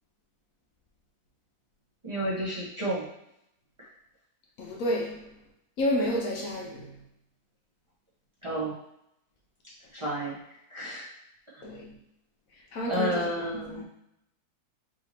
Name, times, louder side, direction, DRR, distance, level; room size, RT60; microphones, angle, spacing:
voice 1, 2.0-3.0 8.4-8.7 9.9-10.3 10.7-11.0 12.9-13.8, right 1 dB, 25° right, 0.9 m, -31 dB
voice 2, 4.6-5.3 5.8-6.9 11.6-12.0 12.7-13.3 13.5-13.8, left 1 dB, 65° left, 1.0 m, -30 dB
4.9 x 2.8 x 2.9 m
omnidirectional pair, 1.7 m